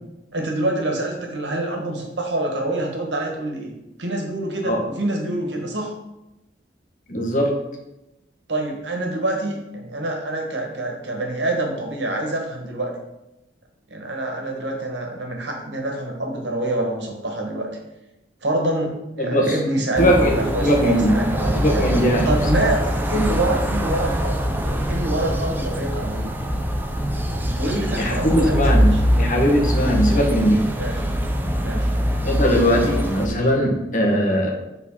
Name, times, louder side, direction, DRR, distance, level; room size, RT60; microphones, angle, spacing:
voice 1, 0.3-3.7 4.0-5.9 8.5-12.9 13.9-17.7 18.4-21.9 22.2-26.3 27.6-29.0 30.8-31.0 31.6-31.9, right 1 dB, 75° right, 1 dB, 1.6 m, -26 dB
voice 2, 7.1-7.5 19.2-19.6 20.0-21.1 21.6-22.3 28.0-30.6 32.2-34.5, equal, 45° left, 0 dB, 1.4 m, -20 dB
sound 1, 20.0-33.3, equal, 10° right, 0.6 m, -23 dB
7.2 x 4.1 x 5.6 m, 0.94 s
head